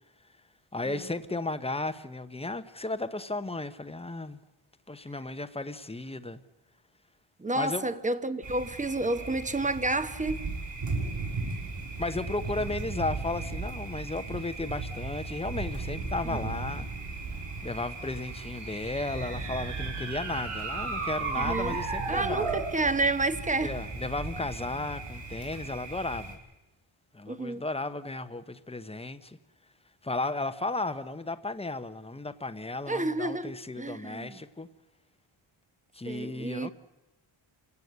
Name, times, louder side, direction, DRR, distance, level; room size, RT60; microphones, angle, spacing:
voice 1, 0.7-4.4 4.9-6.4 7.5-7.8 12.0-16.9 17.6-22.6 23.6-26.4 27.1-29.4 30.0-34.7 35.9-36.7, left 2 dB, 10° left, 1.0 m, -34 dB
voice 2, 7.4-10.5 16.2-16.5 21.4-21.8 22.1-23.8 27.3-27.6 32.9-34.4 36.1-36.7, right 2 dB, 15° right, 1.1 m, -30 dB
Thunder, 8.4-26.3, right 3 dB, 60° right, 6.5 m, -37 dB
sound 1, 18.3-22.7, right 4 dB, 85° right, 3.4 m, -34 dB
28.5 x 17.0 x 8.1 m
wide cardioid pair, 140°, 49 cm